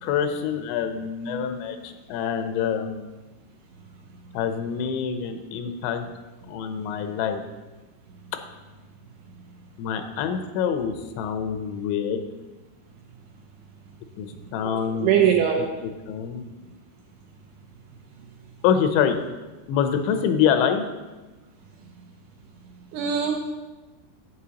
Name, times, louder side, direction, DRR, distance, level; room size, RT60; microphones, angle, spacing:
voice 1, 0.0-3.1 4.3-6.0 6.5-7.4 9.8-12.2 14.2-15.2 15.8-16.4 18.6-19.2 19.7-20.9, left 8 dB, 85° left, 7 dB, 2.9 m, -26 dB
voice 2, 14.6-15.7 22.9-23.5, right 8 dB, 80° right, 2 dB, 2.4 m, -22 dB
11.0 x 8.7 x 2.9 m, 1.2 s
omnidirectional pair, 5.2 m